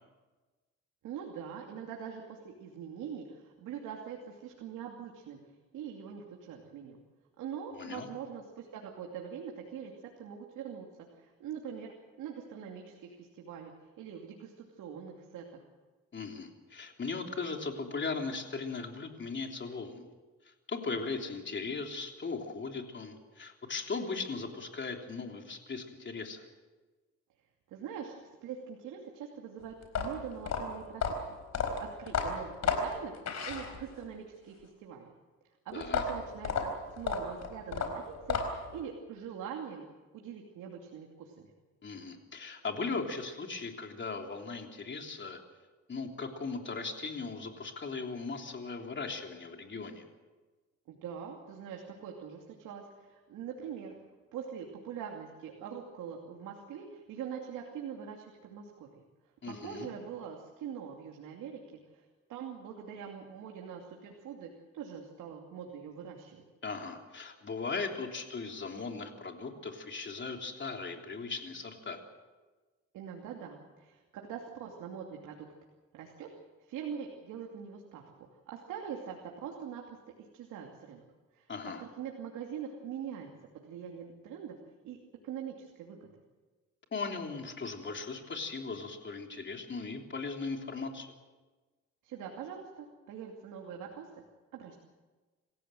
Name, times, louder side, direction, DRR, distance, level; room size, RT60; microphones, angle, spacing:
voice 1, 1.0-5.4 5.7-7.0 7.4-9.9 10.2-15.6 27.7-28.1 28.4-31.2 31.8-35.1 35.6-39.8 40.1-41.5 50.9-54.0 54.3-58.9 59.5-61.6 61.9-62.0 62.3-66.4 72.9-75.5 75.9-76.3 76.7-80.0 80.3-81.0 81.3-81.5 81.8-84.6 84.8-85.0 85.2-86.1 92.0-94.1 94.5-94.8, right 8 dB, 85° right, 1 dB, 2.7 m, -43 dB
voice 2, 7.7-8.1 16.1-20.1 20.4-26.5 35.7-36.0 41.8-45.4 45.9-50.0 59.4-59.9 66.6-72.0 81.5-81.8 86.9-91.1, left 4 dB, 40° left, 3 dB, 3.3 m, -38 dB
sound 1, 29.8-34.1 35.8-38.8, left 5 dB, 65° left, 4.5 m, -33 dB
27.5 x 15.0 x 7.8 m, 1.3 s
cardioid pair, 90°, 30 cm